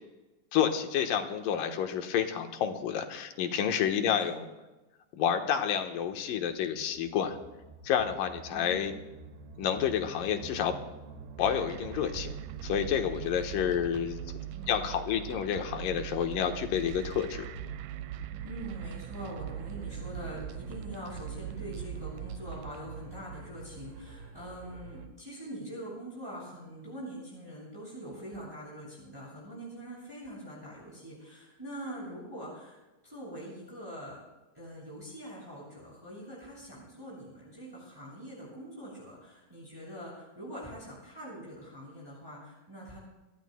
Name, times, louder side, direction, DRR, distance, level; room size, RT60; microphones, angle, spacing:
voice 1, 0.5-4.5 5.1-7.4 7.8-8.9 9.6-10.7 11.4-12.3 12.6-14.2 14.7-17.5, left 9 dB, 85° left, 5 dB, 2.8 m, -29 dB
voice 2, 4.0-4.4 8.5-9.0 13.3-13.5 14.5-14.9 18.4-32.8 33.0-34.2 34.5-43.0, equal, 5° right, -6 dB, 6.8 m, -44 dB
sound 1, 5.8-25.1, right 5 dB, 65° right, 2.7 m, -46 dB
sound 2, 11.4-22.8, right 15 dB, 90° right, 2.3 m, -42 dB
26.5 x 18.0 x 2.2 m, 1.1 s
omnidirectional pair, 3.9 m